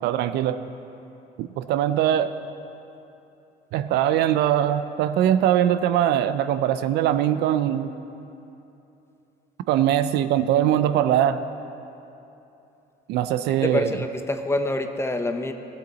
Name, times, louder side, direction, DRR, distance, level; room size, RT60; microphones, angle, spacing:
voice 1, 0.0-0.6 1.4-2.3 3.7-7.9 9.7-11.4 13.1-13.9, right 11 dB, 80° right, 12 dB, 0.4 m, -21 dB
voice 2, 13.6-15.5, left 2 dB, 15° left, 7 dB, 0.6 m, -26 dB
15.5 x 7.8 x 4.0 m, 2.9 s
cardioid pair, 110°, 17 cm